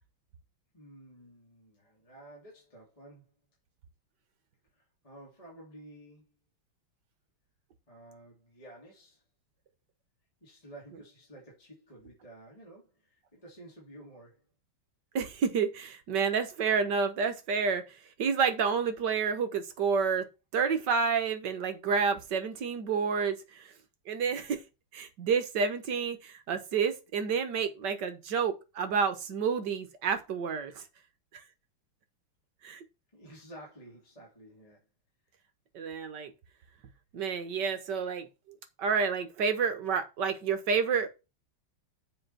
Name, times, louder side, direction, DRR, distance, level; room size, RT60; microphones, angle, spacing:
voice 1, 0.7-3.3 4.7-6.3 7.9-9.2 10.4-14.4 33.1-34.9, right 1 dB, 15° left, 2.8 m, -52 dB
voice 2, 15.1-17.8 18.2-20.2 20.5-23.7 24.1-24.6 24.9-30.8 31.3-31.4 32.6-32.8 35.7-36.3 37.1-38.3 38.8-41.1, right 6 dB, 55° right, 1.6 m, -29 dB
7.7 x 5.0 x 5.7 m
omnidirectional pair, 2.4 m